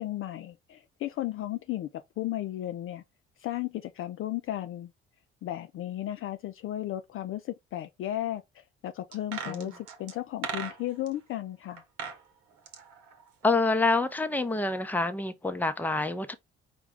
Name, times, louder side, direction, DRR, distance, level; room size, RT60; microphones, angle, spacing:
voice 1, 0.0-3.0 3.4-4.9 5.4-11.8, left 13 dB, 45° left, 0.4 m, -35 dB
sound 1, 9.1-11.1 11.8-12.2 12.5-13.9 14.1-14.2, right 6 dB, 65° right, 1.0 m, -39 dB
voice 2, 13.4-16.3, left 3 dB, 5° left, 0.6 m, -27 dB
5.0 x 2.2 x 3.5 m
hypercardioid pair, 50°, 32 cm